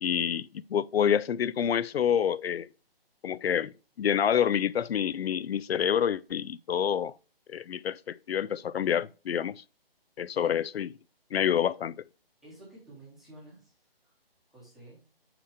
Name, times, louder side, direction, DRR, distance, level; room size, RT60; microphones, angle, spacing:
voice 1, 0.0-2.7 3.2-3.7 4.0-7.1 7.5-9.6 10.2-10.9 11.3-12.0, left 9 dB, 85° left, 0.5 m, -27 dB
voice 2, 12.4-14.1 14.5-15.1, right 1 dB, ahead, 0.9 m, -51 dB
6.6 x 5.9 x 4.8 m
hypercardioid pair, 170°, 30 cm